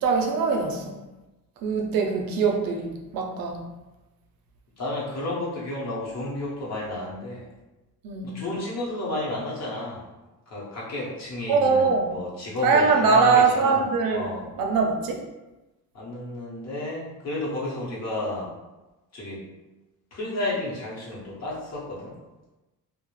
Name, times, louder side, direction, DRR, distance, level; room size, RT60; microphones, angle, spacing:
voice 1, 0.0-1.0 1.6-3.7 8.0-8.4 11.5-12.1 12.6-14.2 14.6-15.2, right 4 dB, 70° right, 2 dB, 0.5 m, -22 dB
voice 2, 4.8-7.5 8.2-10.0 10.5-14.5 15.9-18.5 19.1-19.4 20.1-22.1, left 1 dB, 45° left, -5 dB, 0.8 m, -32 dB
2.3 x 2.0 x 3.0 m, 1.1 s
cardioid pair, 140°, 36 cm